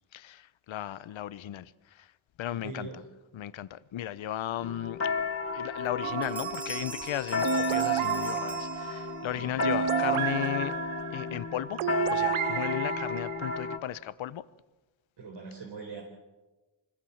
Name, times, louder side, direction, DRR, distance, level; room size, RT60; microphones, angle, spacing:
voice 1, 0.1-2.1 2.4-2.9 3.3-5.1 5.5-10.8 11.1-11.8 12.1-14.4, left 12 dB, 70° left, 1.0 m, -35 dB
voice 2, 2.5-3.0 9.3-9.5 15.2-16.0, right 4 dB, 60° right, 4.4 m, -42 dB
sound 1, 4.6-13.8, left 5 dB, 30° left, 2.1 m, -33 dB
sound 2, 5.2-5.3 5.7-6.0 6.2-9.4, right 2 dB, 5° right, 1.7 m, -43 dB
sound 3, 6.0-13.8, right 15 dB, 90° right, 0.7 m, -32 dB
25.0 x 20.0 x 7.2 m
cardioid pair, 85°, 48 cm